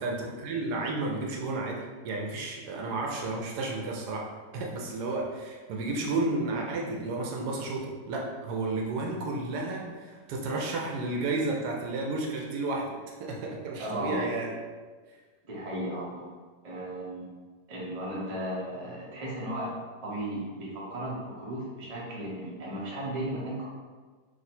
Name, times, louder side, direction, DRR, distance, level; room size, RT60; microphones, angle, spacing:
voice 1, 0.0-4.3 4.5-14.5, right 2 dB, 80° right, -1 dB, 1.2 m, -32 dB
voice 2, 13.8-14.2 15.4-16.3 16.6-17.3 17.7-19.7 20.0-23.6, right 1 dB, 30° right, -6 dB, 0.7 m, -35 dB
3.1 x 2.7 x 4.2 m, 1.4 s
omnidirectional pair, 1.7 m